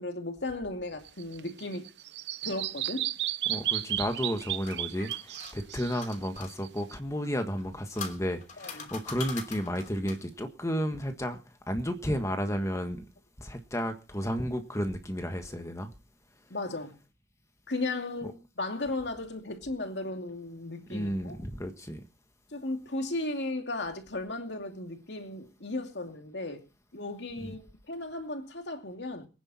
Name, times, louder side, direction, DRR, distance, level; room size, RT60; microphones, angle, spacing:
voice 1, 0.0-1.9 2.4-3.1 8.6-8.9 16.5-17.0 17.7-21.4 22.5-26.6 26.9-29.3, left 2 dB, 80° left, 2.6 m, -35 dB
Bird vocalization bird call bird song, 1.0-6.9, right 13 dB, 75° right, 0.8 m, -34 dB
voice 2, 3.5-11.4 11.7-13.0 13.4-15.9 20.9-22.0 27.4-27.5, equal, 20° left, 1.5 m, -32 dB
sound 1, 4.2-6.5 7.5-10.3, left 5 dB, 45° left, 3.1 m, -43 dB
23.5 x 10.0 x 4.2 m
head